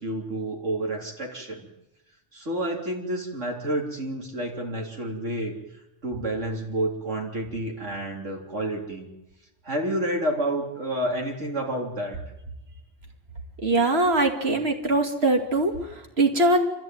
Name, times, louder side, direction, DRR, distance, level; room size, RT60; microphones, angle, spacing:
voice 1, 0.0-1.7 2.3-5.6 6.0-9.1 9.6-12.2, right 1 dB, 80° right, -1 dB, 4.0 m, -29 dB
voice 2, 13.6-16.6, right 2 dB, 55° right, 4 dB, 2.6 m, -22 dB
28.0 x 13.5 x 9.3 m, 0.96 s
omnidirectional pair, 1.3 m